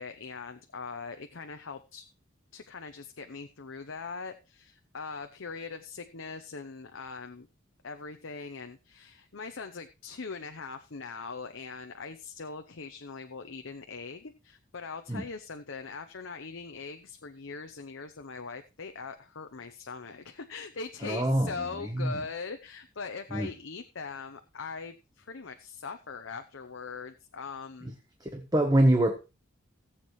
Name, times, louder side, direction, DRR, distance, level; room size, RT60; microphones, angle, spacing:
voice 1, 0.0-2.1 2.5-7.5 7.8-27.9, left 4 dB, 70° left, 0.8 m, -41 dB
voice 2, 21.0-21.5 21.9-22.2 23.3-23.5 28.2-29.1, right 1 dB, 20° right, 1.0 m, -24 dB
19.0 x 7.4 x 3.1 m
head